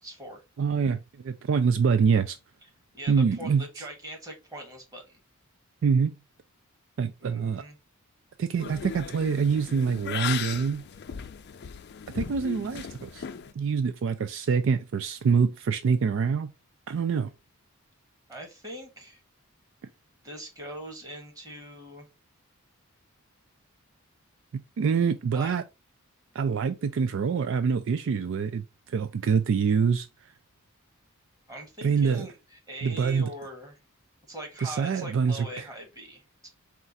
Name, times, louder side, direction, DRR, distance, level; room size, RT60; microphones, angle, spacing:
voice 1, 0.0-0.4 2.9-5.2 7.2-7.8 18.3-19.2 20.2-22.1 25.3-25.5 31.5-33.8 34.3-36.5, right 1 dB, 15° right, 1.4 m, -42 dB
voice 2, 0.6-2.4 3.1-3.6 5.8-6.1 7.0-7.6 8.4-10.8 12.1-13.2 13.6-16.5 16.9-17.3 24.8-25.6 26.3-30.1 31.8-32.3 32.8-33.3 34.6-35.6, right 6 dB, 60° right, 0.3 m, -25 dB
sound 1, 8.6-13.5, left 7 dB, 50° left, 0.4 m, -37 dB
4.4 x 2.4 x 4.0 m
head